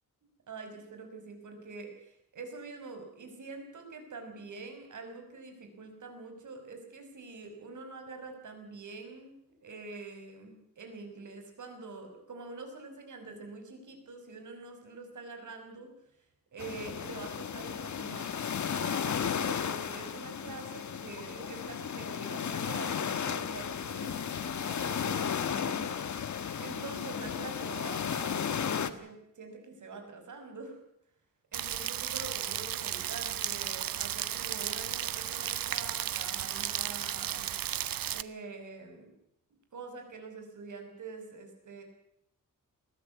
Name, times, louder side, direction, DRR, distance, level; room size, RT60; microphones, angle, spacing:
voice 1, 0.5-9.3 9.6-15.9 16.5-18.3 18.7-30.8 31.5-37.5 38.1-39.1 39.7-41.8, right 3 dB, 60° right, 5 dB, 5.8 m, -45 dB
sound 1, 16.6-28.9, left 7 dB, 60° left, 1.4 m, -34 dB
Rain, 31.5-38.2, right 11 dB, 85° right, 0.9 m, -34 dB
21.5 x 14.5 x 9.6 m, 0.74 s
wide cardioid pair, 150°, 33 cm